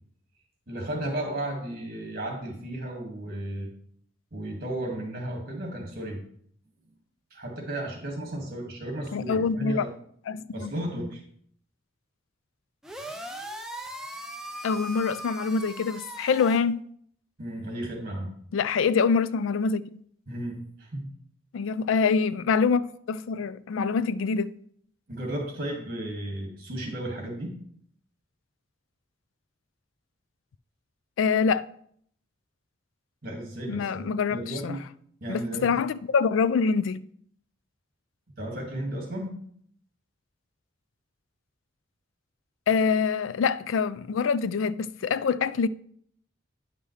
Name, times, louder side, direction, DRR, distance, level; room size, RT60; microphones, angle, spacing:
voice 1, 0.7-3.7 4.3-6.2 7.3-9.9 10.5-11.2 17.4-18.3 20.3-21.1 25.1-27.6 33.2-34.8 35.2-35.7 38.4-39.3, right 1 dB, 50° right, 2.0 m, -34 dB
voice 2, 9.1-9.9 10.3-10.7 14.6-16.8 18.5-19.9 21.5-24.5 31.2-31.7 33.7-34.8 35.3-37.0 42.7-45.7, left 5 dB, 80° left, 0.3 m, -25 dB
sound 1, 12.8-16.6, right 1 dB, 5° right, 0.6 m, -39 dB
9.7 x 5.5 x 3.2 m
head